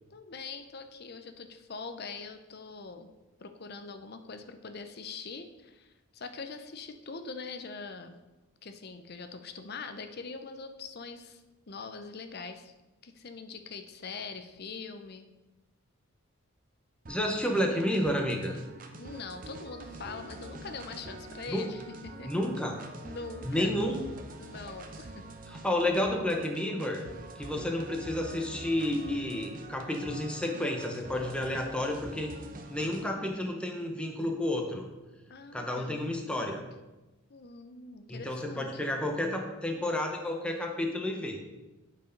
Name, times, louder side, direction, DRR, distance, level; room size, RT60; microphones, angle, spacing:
voice 1, 0.1-3.1 3.4-8.1 8.6-12.7 13.0-15.3 19.0-22.3 23.0-23.7 24.4-25.2 35.3-36.0 37.3-38.8, left 4 dB, 50° left, 8 dB, 0.6 m, -43 dB
voice 2, 17.1-18.6 21.5-21.7 22.2-22.8 23.4-24.0 25.5-27.0 27.4-32.3 32.7-34.8 35.5-36.7 38.1-41.4, left 1 dB, 5° left, 2 dB, 0.8 m, -31 dB
sound 1, 17.1-33.1, right 2 dB, 40° right, 0.7 m, -46 dB
8.4 x 4.7 x 5.2 m, 1.1 s
head